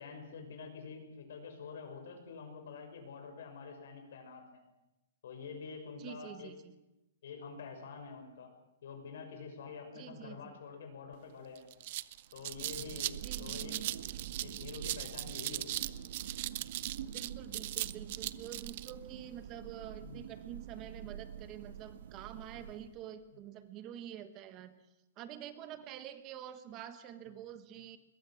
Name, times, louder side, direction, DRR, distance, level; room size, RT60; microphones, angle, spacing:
voice 1, 0.0-4.6 5.2-6.5 7.2-8.5 8.8-11.7 12.3-13.8 14.4-15.9 20.0-20.2 22.5-22.6 23.3-23.4, left 5 dB, 65° left, 5 dB, 6.3 m, -47 dB
voice 2, 6.0-6.7 9.9-10.4 13.2-13.9 17.1-24.7 25.2-28.0, right 10 dB, 25° right, 11 dB, 1.2 m, -47 dB
sound 1, 11.1-11.2 11.6-18.9, right 16 dB, 40° right, 0.7 m, -39 dB
Thunder, 12.2-23.2, right 9 dB, 60° right, 1.4 m, -47 dB
22.5 x 21.0 x 6.4 m, 0.96 s
hypercardioid pair, 165°, 0 cm